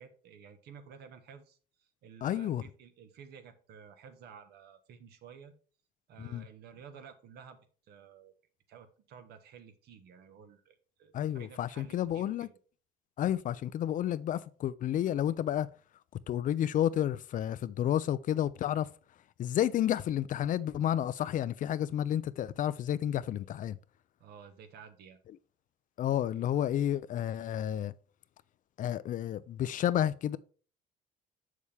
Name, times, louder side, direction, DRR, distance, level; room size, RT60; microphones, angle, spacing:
voice 1, 0.0-5.5 6.1-7.6 7.9-8.3 8.7-12.5 13.5-13.7 24.2-25.2, right 7 dB, 70° right, 1.2 m, -53 dB
voice 2, 2.2-2.6 6.2-6.5 11.1-12.5 13.2-15.7 16.3-18.9 19.4-23.8 26.0-27.9 28.8-30.4, left 11 dB, 50° left, 0.4 m, -31 dB
7.2 x 6.4 x 3.4 m
cardioid pair, 110°, 17 cm